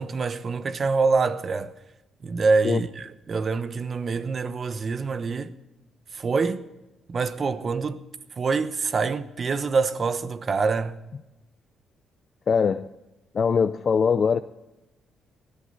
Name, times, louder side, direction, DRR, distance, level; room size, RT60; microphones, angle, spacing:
voice 1, 0.0-1.7 2.2-5.5 6.1-6.6 7.1-8.0 8.4-11.0, right 4 dB, 40° right, 1.1 m, -25 dB
voice 2, 12.5-12.9 13.3-14.4, left 6 dB, 45° left, 0.5 m, -21 dB
19.0 x 14.0 x 4.1 m
cardioid pair, 90°, 0 cm